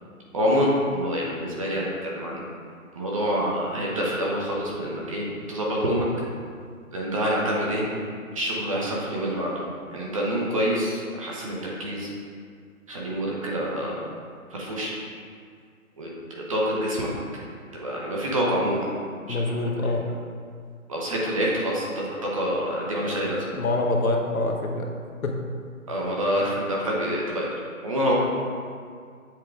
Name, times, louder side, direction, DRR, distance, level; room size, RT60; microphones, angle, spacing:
voice 1, 0.3-2.4 2.9-6.1 6.9-7.9 8.3-9.5 9.9-12.1 12.9-14.0 14.5-14.9 16.0-17.1 17.7-18.9 19.3-19.4 20.9-23.4 25.9-27.5 27.8-28.1, equal, 25° right, -4 dB, 0.8 m, -26 dB
voice 2, 19.3-20.1 23.6-24.9 25.2-25.4, left 2 dB, 75° left, 1 dB, 1.2 m, -25 dB
7.5 x 4.5 x 3.5 m, 2.1 s
hypercardioid pair, 160°, 43 cm